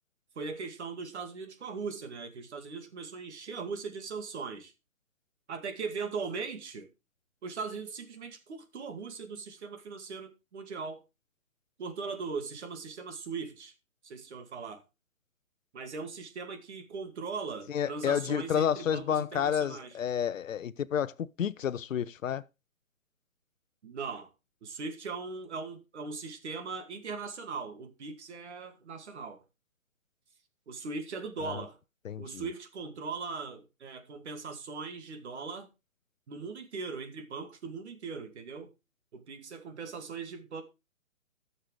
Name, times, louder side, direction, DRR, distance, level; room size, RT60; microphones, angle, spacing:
voice 1, 0.4-4.7 5.5-6.9 7.4-11.0 11.8-13.7 14.0-14.8 15.7-19.9 23.8-24.3 24.6-29.4 30.7-31.8 32.2-35.7 36.3-38.7 39.1-40.6, right 4 dB, 55° right, 2.3 m, -39 dB
voice 2, 17.7-22.4 31.4-31.6 32.0-32.4, left 8 dB, 75° left, 0.7 m, -30 dB
15.0 x 6.8 x 3.2 m
hypercardioid pair, 150°, 40 cm